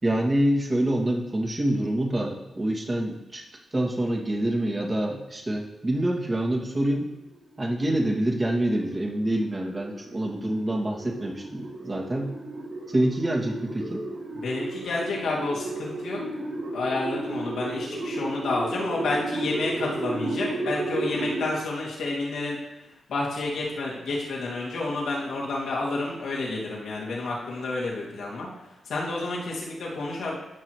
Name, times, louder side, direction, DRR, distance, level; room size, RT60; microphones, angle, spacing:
voice 1, 0.0-3.4 3.7-7.1 7.6-12.3 12.9-14.0, right 1 dB, 35° right, -1 dB, 2.3 m, -26 dB
sound 1, 7.1-21.5, right 2 dB, 85° right, 1.7 m, -34 dB
voice 2, 14.3-16.2 16.7-22.6 23.1-28.5 28.8-30.3, left 2 dB, 75° left, -4 dB, 2.5 m, -30 dB
17.5 x 6.0 x 3.2 m, 0.96 s
supercardioid pair, 40°, 0 cm